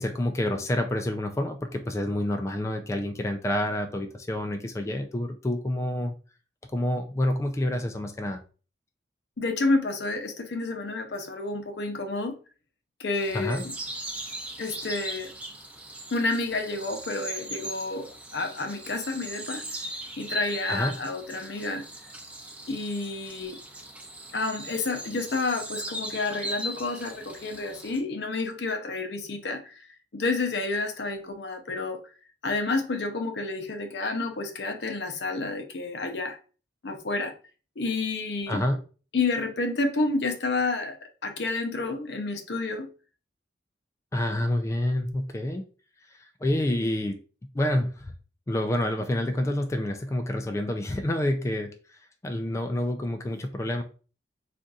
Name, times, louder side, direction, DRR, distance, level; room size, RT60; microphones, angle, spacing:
voice 1, 0.0-6.1 6.7-8.4 13.3-13.6 20.7-20.9 38.5-38.8 44.1-45.6 46.4-47.1 47.5-47.9 48.5-51.7 52.2-53.8, left 1 dB, 15° left, 5 dB, 0.3 m, -28 dB
voice 2, 9.4-12.4 13.0-13.7 14.6-15.3 16.1-19.6 20.2-21.8 22.7-23.6 24.3-29.8 30.1-32.0 32.4-36.4 36.8-37.3 37.8-38.6 39.1-42.9, left 3 dB, 70° left, 5 dB, 0.6 m, -30 dB
sound 1, 13.1-28.0, right 1 dB, 10° right, 0.6 m, -39 dB
3.9 x 2.5 x 2.3 m, 0.36 s
head